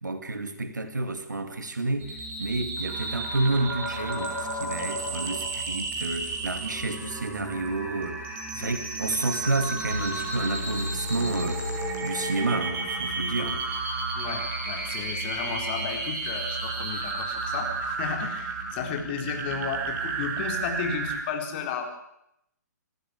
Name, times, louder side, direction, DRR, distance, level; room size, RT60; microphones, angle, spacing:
voice 1, 0.0-8.3 8.5-11.7 12.0-13.7, right 2 dB, 70° right, 2.6 m, -30 dB
sound 1, 2.0-21.2, right 3 dB, 20° right, 6.2 m, -32 dB
sound 2, 9.9-12.8, left 1 dB, 90° right, 2.6 m, -35 dB
voice 2, 14.1-21.9, left 6 dB, 35° left, 4.2 m, -33 dB
27.5 x 15.0 x 8.5 m
figure-of-eight pair, 125°, 10 cm